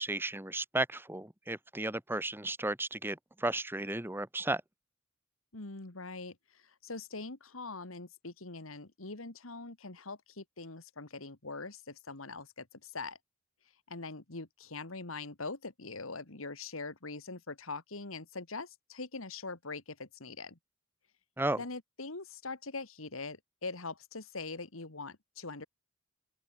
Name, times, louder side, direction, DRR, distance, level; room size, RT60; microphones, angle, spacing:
voice 1, 0.0-4.6 21.4-21.6, right 2 dB, 10° right, 1.3 m, -34 dB
voice 2, 5.5-13.2 13.9-20.6 21.6-25.7, left 3 dB, 80° left, 2.4 m, -43 dB
open air
head